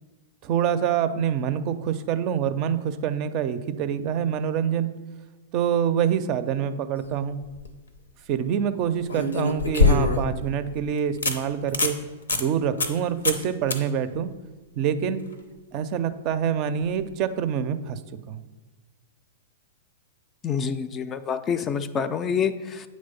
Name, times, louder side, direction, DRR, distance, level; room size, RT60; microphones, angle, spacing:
voice 1, 0.4-4.9 5.5-7.4 8.3-12.0 12.3-14.3 14.8-15.2 15.7-18.0 18.3-18.4, right 8 dB, 40° right, 11 dB, 0.4 m, -26 dB
sound 1, 7.3-7.7 9.1-10.4 10.8-10.9 11.2-11.4 11.7-12.0 12.3-12.4 12.8-13.0 13.2-13.4 13.7-13.8 16.9-17.0, left 4 dB, 85° left, 0.6 m, -23 dB
voice 2, 20.4-22.9, left 7 dB, 25° left, 12 dB, 0.3 m, -27 dB
7.9 x 3.1 x 5.4 m, 1.2 s
hypercardioid pair, 105°, 0 cm